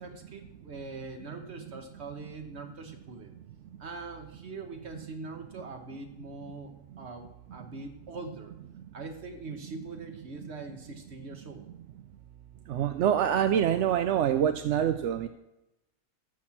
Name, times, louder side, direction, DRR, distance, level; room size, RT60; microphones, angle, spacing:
voice 1, 0.0-3.3 3.8-6.7 7.0-8.5 8.9-11.7, right 3 dB, 50° right, 5 dB, 1.4 m, -42 dB
voice 2, 12.7-15.3, right 9 dB, 65° right, 8 dB, 0.8 m, -25 dB
12.0 x 4.3 x 7.4 m, 0.94 s
omnidirectional pair, 1.5 m